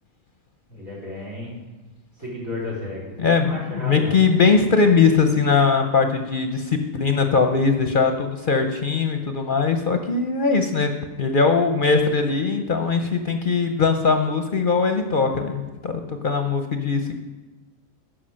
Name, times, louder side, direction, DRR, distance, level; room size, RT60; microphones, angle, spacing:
voice 1, 0.7-1.5 2.2-4.2, left 2 dB, 85° right, -5 dB, 3.9 m, -32 dB
voice 2, 3.2-10.9 11.2-17.1, left 5 dB, 50° left, 6 dB, 0.7 m, -20 dB
11.5 x 5.0 x 6.3 m, 1.2 s
omnidirectional pair, 1.4 m